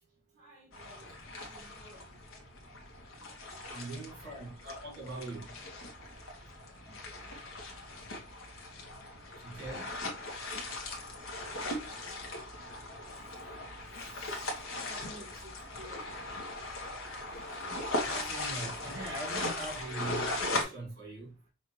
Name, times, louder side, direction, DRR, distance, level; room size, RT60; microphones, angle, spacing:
voice 1, 0.4-2.1 6.8-7.3 13.9-16.1 17.5-17.6 18.0-18.1, equal, 35° right, 1.6 m, -54 dB
sound 1, 0.7-20.6, left 2 dB, 85° left, 1.1 m, -39 dB
voice 2, 3.7-5.5 9.4-10.0 17.9-21.3, right 2 dB, 55° right, 2.1 m, -42 dB
5.4 x 2.5 x 3.0 m
head